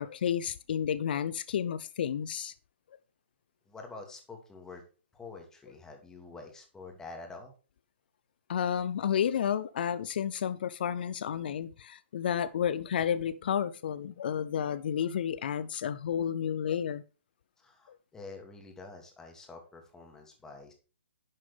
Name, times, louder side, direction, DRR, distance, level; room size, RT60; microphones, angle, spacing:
voice 1, 0.0-2.5 8.5-17.0, left 8 dB, 55° left, 0.6 m, -31 dB
voice 2, 3.7-4.8 5.1-7.5 17.6-20.7, left 3 dB, 10° left, 2.6 m, -47 dB
11.0 x 7.5 x 3.6 m
figure-of-eight pair, 130°, 6 cm